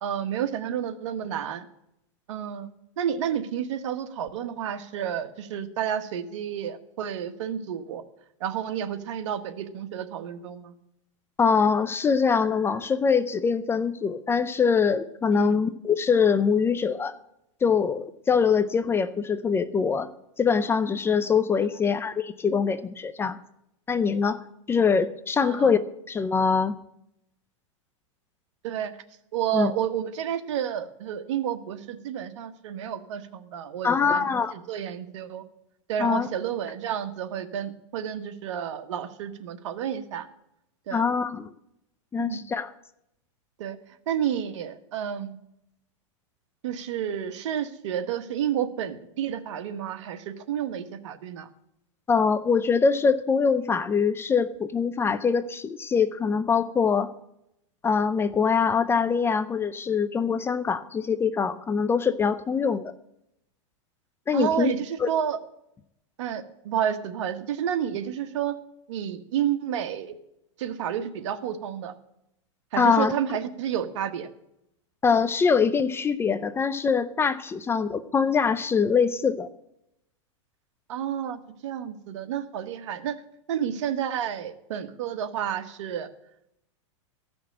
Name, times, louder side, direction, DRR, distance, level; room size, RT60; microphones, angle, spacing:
voice 1, 0.0-1.7 2.3-2.7 3.0-8.0 8.4-10.7 15.3-15.6 25.4-25.7 28.6-28.9 29.3-35.4 35.9-40.3 40.9-41.0 42.2-42.4 43.6-43.8 44.1-45.4 46.6-51.5 64.3-65.4 66.2-68.6 68.9-70.1 70.6-71.9 72.7-74.3 80.9-83.2 83.5-86.1, right 9 dB, 65° right, 9 dB, 1.3 m, -30 dB
voice 2, 11.4-17.1 17.6-20.1 20.4-23.4 23.9-24.4 24.7-25.8 26.1-26.8 29.5-29.7 33.8-34.5 36.0-36.3 40.9-41.5 42.1-42.7 52.1-57.1 57.8-62.9 64.3-64.7 65.0-65.1 72.8-73.1 75.0-79.5, left 5 dB, 15° left, 13 dB, 0.5 m, -23 dB
14.5 x 6.1 x 8.6 m, 0.80 s
hypercardioid pair, 130°, 17 cm